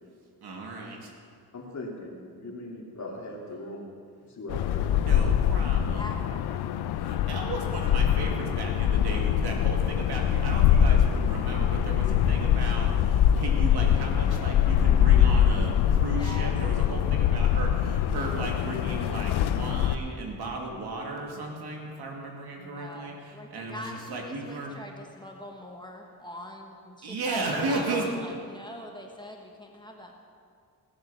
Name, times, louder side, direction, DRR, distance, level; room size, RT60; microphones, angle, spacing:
voice 1, 0.4-1.1 4.9-6.1 7.0-24.8 27.0-28.0, right 2 dB, 75° right, 0 dB, 2.5 m, -35 dB
voice 2, 1.5-3.9 4.3-5.2, left 1 dB, 45° left, -2 dB, 2.9 m, -39 dB
sound 1, 4.5-19.9, left 9 dB, 75° left, 0.6 m, -23 dB
voice 3, 6.0-6.7 16.1-16.6 22.6-30.1, left 1 dB, 10° left, 1 dB, 1.4 m, -42 dB
17.0 x 7.7 x 7.0 m, 2.2 s
cardioid pair, 105°, 39 cm